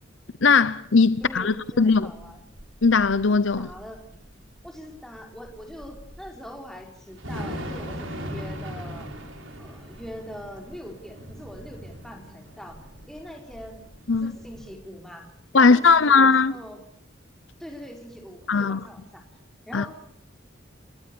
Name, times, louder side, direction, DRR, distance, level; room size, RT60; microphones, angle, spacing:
voice 1, 0.4-2.1 2.8-3.7 14.1-14.3 15.5-16.5 18.5-18.8 19.7-19.8, left 4 dB, 70° left, 0.8 m, -19 dB
voice 2, 1.2-2.4 3.6-4.0 4.6-9.1 9.6-12.8 13.1-13.8 14.2-16.8 17.6-19.2 19.7-19.9, equal, ahead, 4.7 m, -42 dB
Thunder / Rain, 1.2-14.7, equal, 85° right, 5.0 m, -40 dB
29.0 x 18.5 x 7.0 m
head